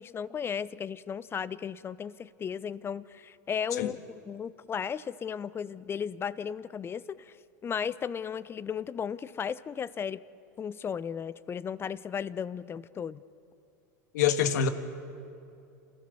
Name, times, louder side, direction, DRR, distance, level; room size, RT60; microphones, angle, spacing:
voice 1, 0.0-4.0 4.3-7.4 7.6-10.2 10.6-13.2, left 7 dB, 25° left, 18 dB, 0.6 m, -35 dB
voice 2, 14.1-14.7, left 8 dB, 70° left, 9 dB, 1.5 m, -25 dB
28.5 x 15.5 x 6.9 m, 2.7 s
hypercardioid pair, 95°, 9 cm